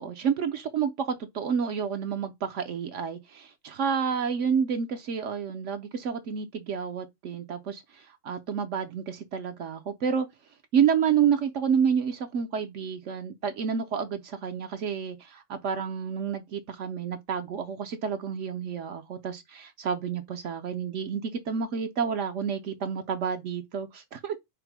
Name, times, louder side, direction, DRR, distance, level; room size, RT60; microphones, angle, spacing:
voice 1, 0.0-10.3 10.7-24.4, right 7 dB, 70° right, 1.0 m, -29 dB
5.0 x 2.0 x 4.6 m
omnidirectional pair, 1.4 m